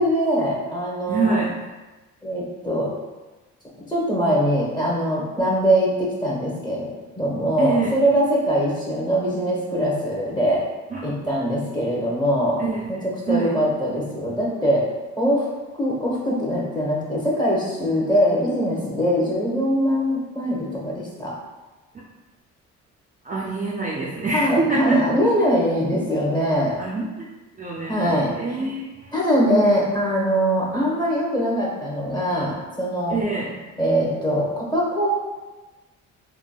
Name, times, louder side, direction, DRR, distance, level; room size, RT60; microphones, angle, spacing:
voice 1, 0.0-1.4 2.2-2.9 3.9-6.9 7.2-10.6 11.0-12.6 12.9-14.8 15.2-15.5 15.8-21.4 24.3-26.8 27.9-28.3 29.1-33.2 33.8-35.1, equal, 15° left, -4 dB, 0.9 m, -22 dB
voice 2, 1.1-1.6 7.6-8.0 10.9-11.1 12.6-13.5 23.2-25.0 26.8-27.3 27.6-29.2 33.1-33.5, right 3 dB, 25° right, -4 dB, 0.4 m, -25 dB
3.3 x 2.3 x 2.2 m, 1.2 s
cardioid pair, 90°, 30 cm